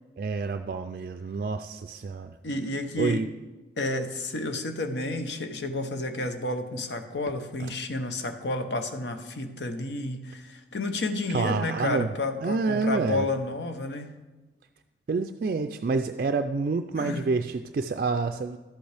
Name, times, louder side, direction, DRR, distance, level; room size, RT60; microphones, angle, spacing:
voice 1, 0.2-2.3 3.0-3.3 11.3-12.1 12.4-13.3 15.1-18.6, right 4 dB, 50° right, 7 dB, 0.3 m, -28 dB
voice 2, 2.4-3.2 3.8-14.1 17.0-17.3, left 2 dB, 85° left, 7 dB, 0.8 m, -31 dB
11.5 x 8.0 x 3.4 m, 1.2 s
head